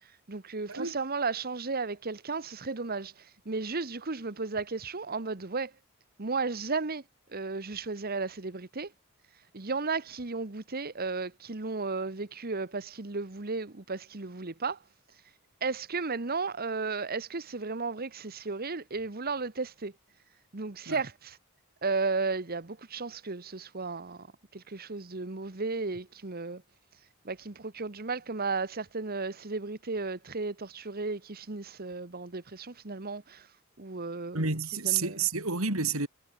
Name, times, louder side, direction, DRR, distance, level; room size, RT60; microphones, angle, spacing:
voice 1, 0.3-5.7 6.2-7.0 7.3-8.9 9.5-14.8 15.6-19.9 20.5-21.4 21.8-24.3 24.5-26.6 27.2-33.5 33.8-34.6 34.8-35.2, right 4 dB, 45° right, 1.3 m, -34 dB
voice 2, 34.3-36.1, right 5 dB, 90° right, 4.8 m, -29 dB
head